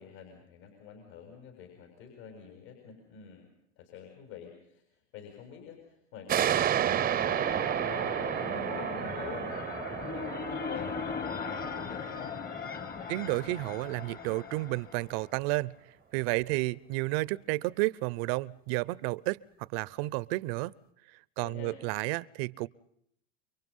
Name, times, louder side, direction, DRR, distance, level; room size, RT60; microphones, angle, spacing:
voice 1, 0.0-9.5 9.9-12.4 21.4-21.8, left 8 dB, 65° left, 3 dB, 7.3 m, -48 dB
sound 1, 6.3-13.5, right 10 dB, 25° right, 0.8 m, -32 dB
sound 2, 6.6-15.3, left 6 dB, 25° left, 1.5 m, -39 dB
voice 2, 13.1-15.7 16.1-20.7 21.4-22.7, right 22 dB, 55° right, 22 dB, 0.9 m, -31 dB
30.0 x 23.5 x 5.5 m, 0.72 s
hypercardioid pair, 115°, 36 cm